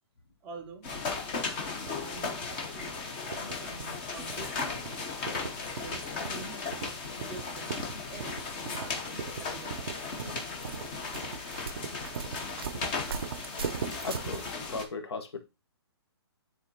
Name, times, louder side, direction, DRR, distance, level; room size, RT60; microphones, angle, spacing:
voice 1, 0.4-0.9 2.0-2.9 3.2-4.6 5.8-6.7 7.2-10.0, right 4 dB, 5° right, 0.4 m, -47 dB
sound 1, 0.8-14.9, left 4 dB, 20° left, 0.8 m, -36 dB
sound 2, 1.9-14.5, right 6 dB, 60° right, 0.5 m, -40 dB
Female speech woman speaking, 3.0-9.8 10.1-11.4, left 4 dB, 40° left, 1.3 m, -54 dB
voice 2, 11.0-11.9 14.0-15.4, left 4 dB, 70° left, 1.4 m, -39 dB
9.3 x 3.8 x 2.9 m
hypercardioid pair, 175°, 14 cm